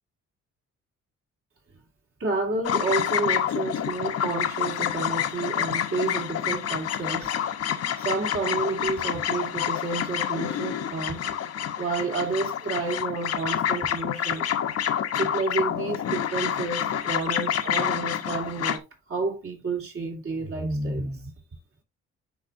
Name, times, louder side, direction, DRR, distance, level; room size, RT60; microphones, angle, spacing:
voice 1, 2.2-7.3 8.0-11.2 11.8-14.5 15.2-21.3, right 3 dB, 50° right, 2.8 m, -30 dB
sound 1, 2.6-18.8, left 9 dB, 55° left, 0.9 m, -28 dB
10.5 x 4.2 x 2.6 m
cardioid pair, 90°, 30 cm